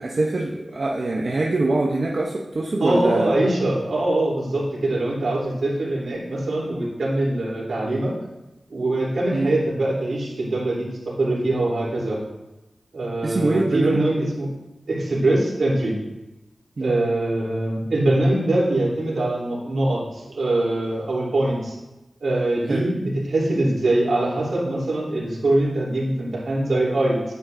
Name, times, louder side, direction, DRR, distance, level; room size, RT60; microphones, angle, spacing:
voice 1, 0.0-3.3 9.3-9.5 13.2-14.0 16.8-17.0 22.7-22.9, right 2 dB, 55° right, -2 dB, 0.8 m, -23 dB
voice 2, 2.8-8.1 8.7-12.2 12.9-14.5 14.9-16.0 16.8-21.7 22.2-27.2, right 1 dB, 80° right, -6 dB, 3.3 m, -23 dB
10.5 x 8.9 x 2.6 m, 1.0 s
wide cardioid pair, 85°, 0 cm